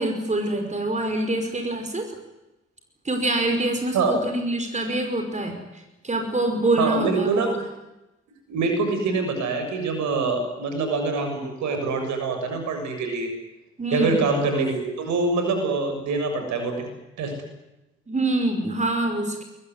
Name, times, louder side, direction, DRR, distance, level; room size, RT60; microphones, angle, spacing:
voice 1, 0.0-2.1 3.0-7.6 13.8-14.3 18.1-19.4, right 1 dB, 20° right, 5 dB, 5.3 m, -25 dB
voice 2, 3.9-4.3 6.8-7.5 8.5-13.3 13.9-17.4, right 3 dB, 55° right, 6 dB, 7.0 m, -25 dB
25.5 x 22.0 x 9.7 m, 0.97 s
figure-of-eight pair, 45°, 34 cm